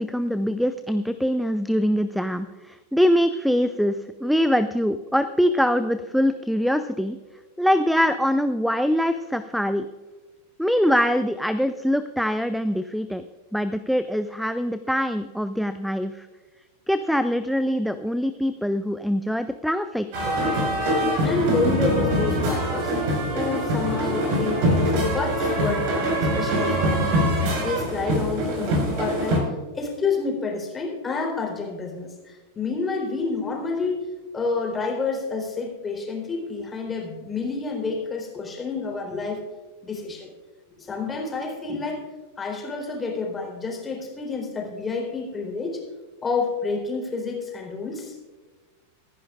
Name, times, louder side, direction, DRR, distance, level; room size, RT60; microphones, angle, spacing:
voice 1, 0.0-7.2 7.6-9.9 10.6-13.2 13.5-16.3 16.9-20.1, equal, ahead, 12 dB, 0.5 m, -23 dB
sound 1, 20.1-29.4, equal, 45° right, 5.1 m, -23 dB
voice 2, 21.2-22.9 23.3-27.1 27.6-29.4 29.7-34.0 34.3-39.4 39.8-40.3 40.8-42.0 42.4-45.8 46.2-48.1, left 4 dB, 15° left, 0 dB, 3.9 m, -29 dB
24.5 x 11.0 x 2.5 m, 1.3 s
figure-of-eight pair, 90°, 0 cm